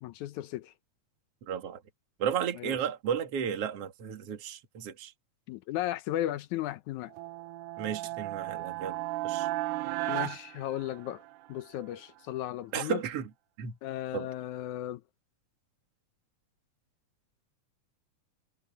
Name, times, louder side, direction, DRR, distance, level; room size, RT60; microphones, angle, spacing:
voice 1, 0.0-0.7 2.6-2.8 5.5-7.1 10.1-11.2 11.5-13.0 13.8-15.0, left 13 dB, 75° left, 2.1 m, -35 dB
voice 2, 1.5-1.8 2.2-5.1 7.8-9.0 9.2-9.5 12.7-13.3 13.6-13.8 14.1-14.3, right 8 dB, 50° right, 2.7 m, -33 dB
sound 1, 7.1-11.5, right 17 dB, 85° right, 2.1 m, -35 dB
omnidirectional pair, 3.6 m